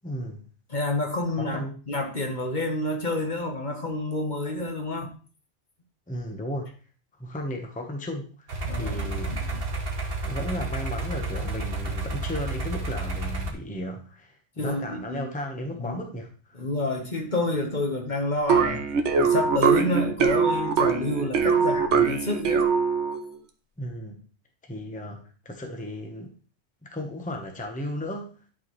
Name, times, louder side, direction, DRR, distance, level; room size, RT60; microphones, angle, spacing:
voice 1, 0.0-0.4 1.4-1.8 6.1-6.7 7.2-8.5 8.8-9.5 10.2-16.6 23.8-24.2 24.6-26.3 26.8-28.3, equal, 5° left, 0.9 m, -35 dB
voice 2, 0.7-5.1 8.6-9.6 14.6-15.2 15.8-16.0 16.5-18.9 19.2-22.6, left 2 dB, 40° left, 1.3 m, -29 dB
sound 1, 8.5-13.5, right 2 dB, 55° right, 1.3 m, -31 dB
sound 2, 18.5-23.3, right 6 dB, 70° right, 1.0 m, -22 dB
11.0 x 4.6 x 3.1 m
omnidirectional pair, 1.2 m